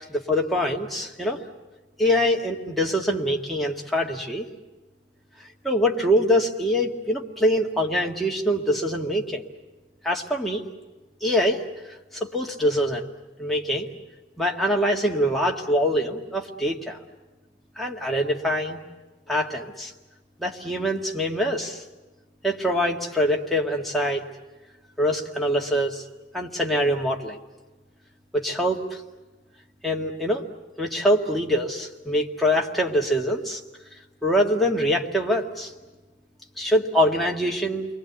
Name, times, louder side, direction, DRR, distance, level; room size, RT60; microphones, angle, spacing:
voice 1, 0.0-1.4 2.0-4.5 5.6-9.4 10.0-10.6 11.2-11.6 12.1-13.1 13.4-13.9 14.4-17.0 17.8-18.8 19.3-19.9 20.4-21.8 22.4-24.2 25.0-26.0 26.3-27.4 28.3-29.0 29.8-30.4 30.8-33.6 34.2-35.7 36.6-37.9, equal, ahead, -2 dB, 1.9 m, -24 dB
29.0 x 23.0 x 8.2 m, 1.2 s
head